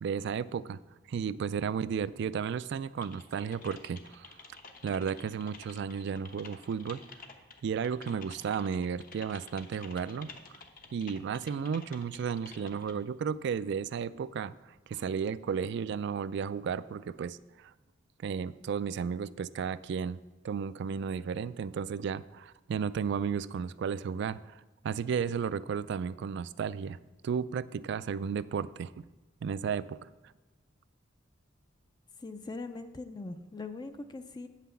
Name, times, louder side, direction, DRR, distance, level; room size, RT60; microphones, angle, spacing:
voice 1, 0.0-0.8 1.1-4.3 4.8-7.0 7.6-10.3 10.9-17.7 18.2-20.2 20.4-29.0 29.4-30.1, right 6 dB, 65° right, 17 dB, 0.3 m, -33 dB
Typing, 3.0-12.9, left 4 dB, 45° left, 0.9 m, -51 dB
voice 2, 32.2-34.5, left 3 dB, 20° left, 8 dB, 0.4 m, -41 dB
8.4 x 5.8 x 7.0 m, 1.1 s
head